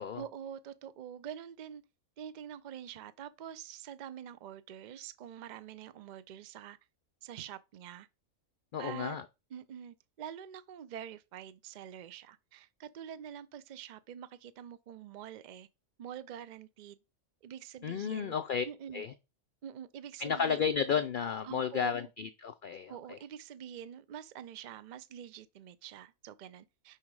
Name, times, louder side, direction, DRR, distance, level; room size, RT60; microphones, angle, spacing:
voice 1, 0.1-1.8 2.2-6.8 7.2-8.1 8.8-9.2 9.5-15.7 16.0-17.0 17.4-18.4 18.6-19.1 19.6-20.6 21.4-22.1 22.9-27.0, right 9 dB, 85° right, 0.4 m, -46 dB
voice 2, 8.7-9.2 17.8-18.6 18.9-19.1 20.2-23.2, left 7 dB, 65° left, 0.5 m, -33 dB
5.7 x 4.9 x 4.7 m
omnidirectional pair, 1.4 m